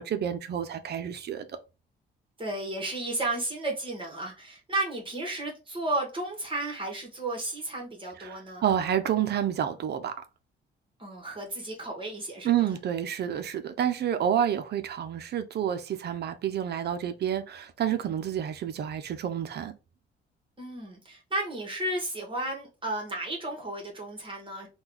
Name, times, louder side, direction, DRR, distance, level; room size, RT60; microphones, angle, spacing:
voice 1, 0.0-1.5 8.2-10.2 12.4-19.7, right 9 dB, 55° right, 0.5 m, -29 dB
voice 2, 2.4-8.6 11.0-12.7 20.6-24.7, right 2 dB, 25° right, 1.3 m, -33 dB
3.5 x 2.3 x 3.0 m
cardioid pair, 90°, 20 cm